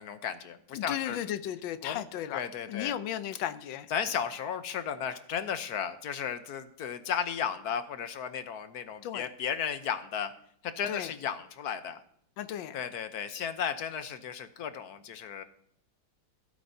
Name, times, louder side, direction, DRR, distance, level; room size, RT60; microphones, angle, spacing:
voice 1, 0.0-1.2 1.8-2.0 2.3-3.0 3.9-10.3 10.6-12.0 12.7-15.4, left 8 dB, 60° left, 10 dB, 1.2 m, -34 dB
voice 2, 0.7-2.4 2.7-3.9 9.0-9.3 10.9-11.1 12.4-12.8, left 11 dB, 85° left, 11 dB, 1.4 m, -35 dB
16.0 x 8.7 x 2.7 m, 0.66 s
omnidirectional pair, 2.1 m